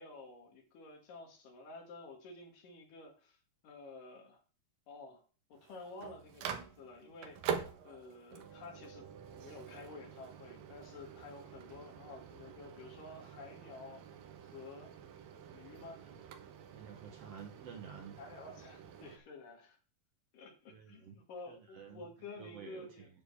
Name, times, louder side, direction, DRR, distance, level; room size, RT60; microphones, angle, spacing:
voice 1, 0.0-3.4 3.6-4.4 4.9-5.2 5.5-9.1 9.4-14.1 14.4-14.9 15.5-16.0 18.2-19.8 20.3-23.1, left 3 dB, 75° left, 1 dB, 3.9 m, -51 dB
Microwave oven, 5.5-19.2, right 7 dB, 85° right, 2.8 m, -46 dB
voice 2, 16.7-18.2 20.7-21.1 21.5-22.1 22.4-23.1, right 7 dB, 65° right, 4 dB, 1.6 m, -50 dB
9.7 x 4.4 x 7.0 m, 0.37 s
omnidirectional pair, 3.9 m